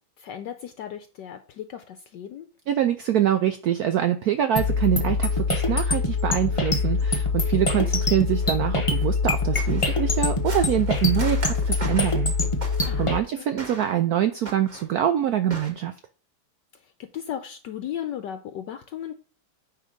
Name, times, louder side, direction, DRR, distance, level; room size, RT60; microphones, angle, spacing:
voice 1, 0.0-2.5 12.9-13.5 16.7-19.1, left 10 dB, 70° left, 8 dB, 1.1 m, -36 dB
voice 2, 2.7-12.3 12.8-15.9, right 10 dB, 85° right, 9 dB, 0.8 m, -25 dB
sound 1, 4.6-13.2, left 3 dB, 30° left, 0.6 m, -24 dB
sound 2, 8.4-8.5 9.0-9.1 9.6-13.2 13.6-14.0 14.4-15.0 15.5-15.7, right 2 dB, 25° right, 1.4 m, -38 dB
9.6 x 3.5 x 5.1 m, 0.40 s
omnidirectional pair, 2.2 m